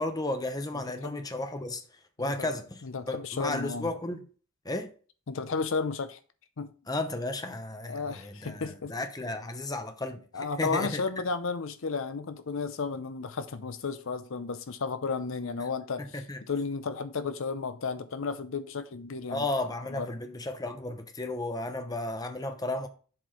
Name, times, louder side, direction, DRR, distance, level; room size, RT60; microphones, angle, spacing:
voice 1, 0.0-1.8 2.2-2.8 3.1-4.3 4.6-4.9 6.9-10.2 10.6-11.0 16.0-16.4 19.3-22.9, left 2 dB, 15° left, 0.8 m, -33 dB
voice 2, 2.8-3.9 5.3-6.2 6.6-6.7 7.9-8.9 10.3-19.4 20.0-20.1, left 4 dB, 60° left, 0.6 m, -33 dB
7.5 x 4.4 x 5.7 m
head